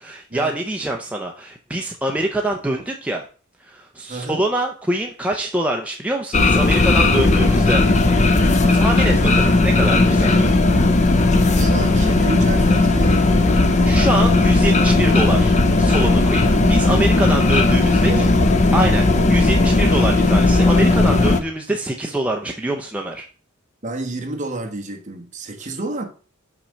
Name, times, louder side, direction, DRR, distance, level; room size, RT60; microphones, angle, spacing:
voice 1, 0.0-3.2 3.6-7.8 8.8-10.5 13.8-18.1 18.7-23.3, right 1 dB, 5° right, 0.6 m, -25 dB
voice 2, 4.1-4.4 8.6-9.3 11.5-13.9 17.7-17.8 18.1-18.3 23.8-26.0, right 2 dB, 35° right, 1.2 m, -30 dB
sound 1, 6.3-21.4, left 2 dB, 35° left, 0.6 m, -16 dB
5.8 x 4.2 x 6.3 m
head